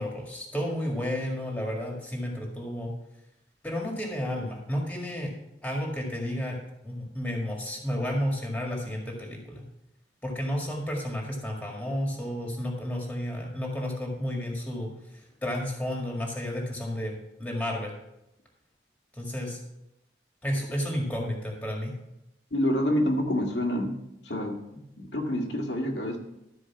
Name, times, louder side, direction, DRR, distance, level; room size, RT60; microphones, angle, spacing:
voice 1, 0.0-2.9 3.6-5.3 5.6-6.6 6.8-9.6 10.2-14.9 15.4-17.9 19.1-19.6 20.4-21.9, equal, 10° left, 0 dB, 1.9 m, -32 dB
voice 2, 22.5-23.9 24.3-24.5 25.0-26.2, left 1 dB, 85° left, 0 dB, 1.8 m, -27 dB
13.0 x 4.8 x 5.9 m, 0.86 s
head